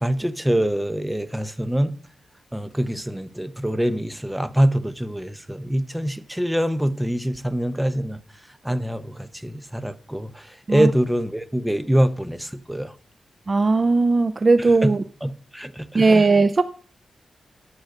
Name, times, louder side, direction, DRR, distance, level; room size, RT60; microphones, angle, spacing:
voice 1, 0.0-1.9 2.5-8.2 8.6-12.9 14.6-16.3, right 1 dB, 5° right, 0.8 m, -24 dB
voice 2, 13.5-15.0 15.9-16.6, right 3 dB, 35° right, 0.4 m, -18 dB
10.5 x 6.3 x 6.4 m
wide cardioid pair, 120°, 0 cm